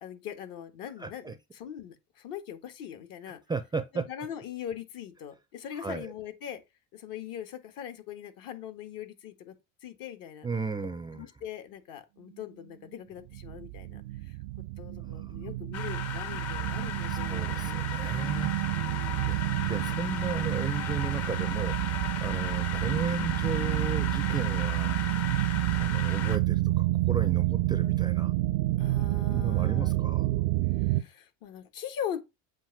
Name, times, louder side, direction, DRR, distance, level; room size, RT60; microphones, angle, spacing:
voice 1, 0.0-3.4 3.9-6.6 6.9-9.5 9.8-10.5 11.1-14.4 14.8-18.0 18.7-19.5 28.8-29.9 30.8-32.2, left 9 dB, 65° left, 1.4 m, -41 dB
voice 2, 1.0-1.3 3.5-4.1 5.8-6.1 10.4-11.3 15.1-15.3 17.1-18.5 19.3-19.4 19.7-21.7 22.2-25.0 25.8-28.3 29.3-30.3, right 4 dB, 10° right, 0.4 m, -35 dB
sound 1, 13.3-31.0, right 18 dB, 80° right, 0.6 m, -29 dB
sound 2, 15.7-26.4, left 8 dB, 40° left, 0.9 m, -37 dB
7.5 x 2.6 x 5.7 m
supercardioid pair, 110°, 38 cm